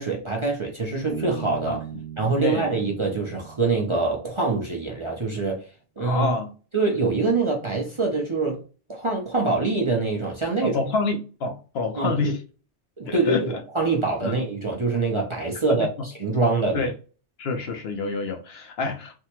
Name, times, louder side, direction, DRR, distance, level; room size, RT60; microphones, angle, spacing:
voice 1, 0.0-1.8 2.2-5.6 6.0-6.3 6.7-8.6 8.9-10.8 12.0-12.3 13.0-16.9, right 3 dB, 35° right, 0.6 m, -25 dB
Bass guitar, 1.1-4.6, right 8 dB, 65° right, 0.8 m, -38 dB
voice 2, 6.0-6.5 10.6-12.4 13.1-13.5 14.2-14.4 15.7-15.8 16.7-16.9 17.4-19.2, left 4 dB, 65° left, 0.9 m, -27 dB
3.5 x 2.1 x 2.9 m
omnidirectional pair, 1.2 m